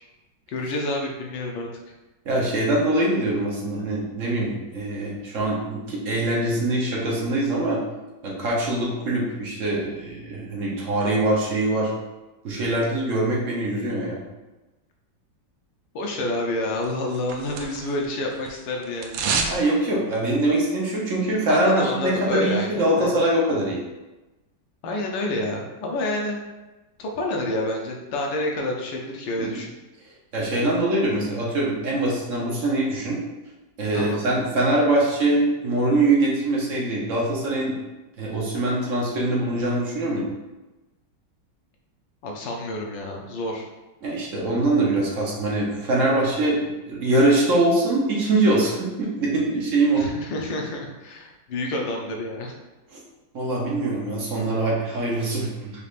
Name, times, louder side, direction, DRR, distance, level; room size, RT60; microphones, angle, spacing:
voice 1, 0.5-1.9 15.9-19.2 21.5-23.2 24.8-26.4 27.0-29.7 33.9-34.2 42.2-43.7 50.0-52.5, left 1 dB, 85° left, 0 dB, 1.5 m, -28 dB
voice 2, 2.3-7.8 8.2-11.9 12.4-14.2 19.5-23.8 29.4-29.6 30.3-33.2 33.8-37.7 38.2-40.3 44.0-50.0 52.9-53.0 53.3-55.7, right 2 dB, 55° right, -4 dB, 1.0 m, -23 dB
sound 1, 16.8-18.1 18.3-19.6 19.9-20.0, right 5 dB, 90° right, 1.3 m, -28 dB
5.2 x 3.3 x 2.5 m, 1.1 s
omnidirectional pair, 2.0 m